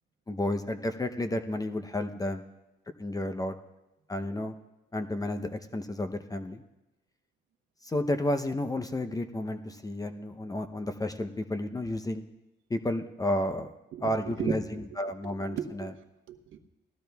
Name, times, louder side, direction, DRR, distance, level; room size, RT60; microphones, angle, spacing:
voice 1, 0.3-2.5 3.0-3.5 4.1-4.5 4.9-6.6 7.8-12.2 12.7-13.7 14.0-14.6 15.0-15.9, left 1 dB, 20° left, 8 dB, 0.7 m, -31 dB
voice 2, 13.9-16.6, right 8 dB, 80° right, 6 dB, 1.1 m, -37 dB
19.0 x 14.0 x 2.3 m, 0.98 s
cardioid pair, 90°, 20 cm